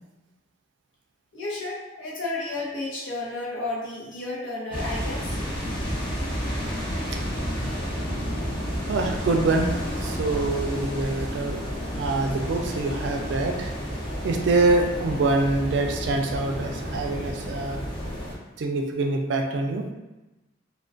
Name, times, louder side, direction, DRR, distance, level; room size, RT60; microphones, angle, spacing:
voice 1, 1.3-5.4, left 2 dB, 85° left, -5 dB, 0.7 m, -32 dB
sound 1, 4.7-18.3, equal, 25° left, 0.5 m, -31 dB
voice 2, 8.9-11.6 11.9-17.8 18.6-19.9, right 3 dB, 60° right, 3 dB, 0.3 m, -25 dB
2.3 x 2.1 x 2.4 m, 1.0 s
head